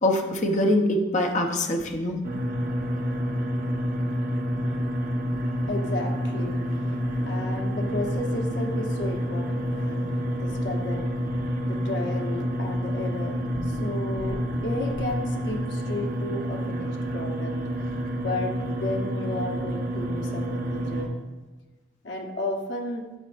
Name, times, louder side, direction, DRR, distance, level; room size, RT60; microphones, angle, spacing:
voice 1, 0.0-2.2, left 1 dB, 40° left, 3 dB, 0.8 m, -24 dB
sound 1, 2.2-21.0, equal, 50° right, 0.9 m, -28 dB
voice 2, 5.7-7.0 7.3-11.3 11.7-21.2 22.0-23.0, left 2 dB, 70° left, 1 dB, 1.1 m, -33 dB
8.9 x 6.8 x 2.5 m, 1.2 s
head